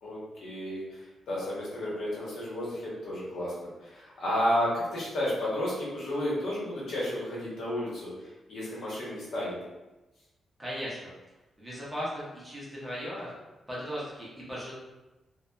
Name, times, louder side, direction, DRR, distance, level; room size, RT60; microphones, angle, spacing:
voice 1, 0.0-3.5 3.8-8.1 8.5-9.6, left 1 dB, 70° left, -7 dB, 0.9 m, -32 dB
voice 2, 10.6-11.1 11.6-13.3 13.7-14.7, equal, 10° right, -7 dB, 0.6 m, -37 dB
2.6 x 2.1 x 2.2 m, 1.1 s
wide cardioid pair, 170°, 0 cm